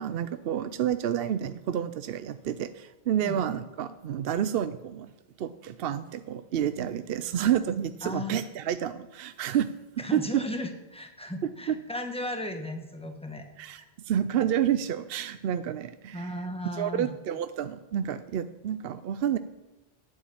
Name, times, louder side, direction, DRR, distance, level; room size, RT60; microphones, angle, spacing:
voice 1, 0.0-5.1 5.4-9.7 10.1-10.2 11.7-11.8 13.6-16.3 16.8-19.4, right 9 dB, 70° right, 12 dB, 0.8 m, -29 dB
voice 2, 8.0-8.4 10.0-13.5 13.8-13.9 16.1-17.1, left 1 dB, 5° left, 5 dB, 1.5 m, -36 dB
11.0 x 9.0 x 8.6 m, 1.0 s
omnidirectional pair, 1.0 m